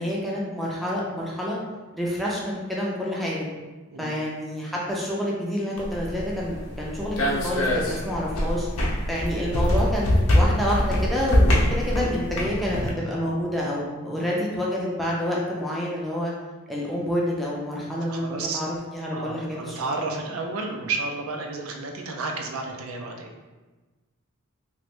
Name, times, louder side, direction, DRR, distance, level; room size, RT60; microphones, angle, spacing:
voice 1, 0.0-1.6 1.9-3.5 4.0-8.7 9.1-16.3 16.7-18.7 18.9-19.8, equal, ahead, -5 dB, 0.5 m, -28 dB
sound 1, 5.8-12.9, left 1 dB, 65° left, 0.6 m, -24 dB
voice 2, 18.1-18.6 19.1-23.3, right 3 dB, 70° right, 2 dB, 0.4 m, -31 dB
3.0 x 2.5 x 3.1 m, 1.2 s
head